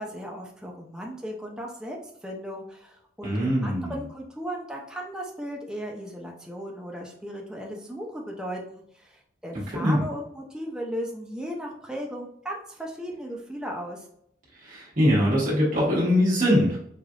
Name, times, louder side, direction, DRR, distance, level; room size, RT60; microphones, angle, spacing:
voice 1, 0.0-2.0 2.2-14.0, equal, 5° right, -1 dB, 0.5 m, -36 dB
voice 2, 3.2-4.0 9.8-10.0 14.6-16.8, equal, 50° right, -7 dB, 1.4 m, -22 dB
4.9 x 2.5 x 2.4 m, 0.71 s
head